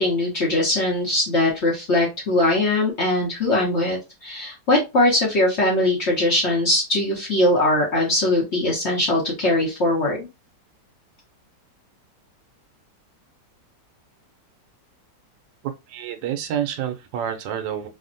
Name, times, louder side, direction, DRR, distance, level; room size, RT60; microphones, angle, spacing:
voice 1, 0.0-10.3, left 1 dB, 50° left, 0.9 m, -21 dB
voice 2, 15.6-17.9, right 9 dB, 85° right, 1.3 m, -28 dB
3.3 x 2.1 x 2.5 m
omnidirectional pair, 2.0 m